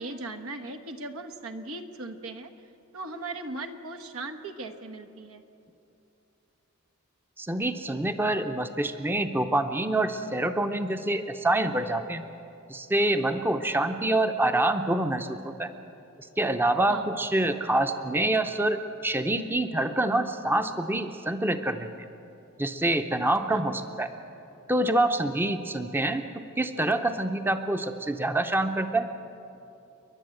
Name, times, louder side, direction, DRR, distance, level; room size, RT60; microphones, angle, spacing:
voice 1, 0.0-2.5 2.9-5.4 16.9-17.1 23.5-23.6, right 2 dB, 85° right, 7 dB, 1.3 m, -38 dB
voice 2, 7.4-12.2 12.7-15.7 16.4-21.9 22.6-24.1 24.7-26.3 26.6-29.1, right 1 dB, 10° right, 8 dB, 0.6 m, -26 dB
30.0 x 11.0 x 7.9 m, 2.8 s
head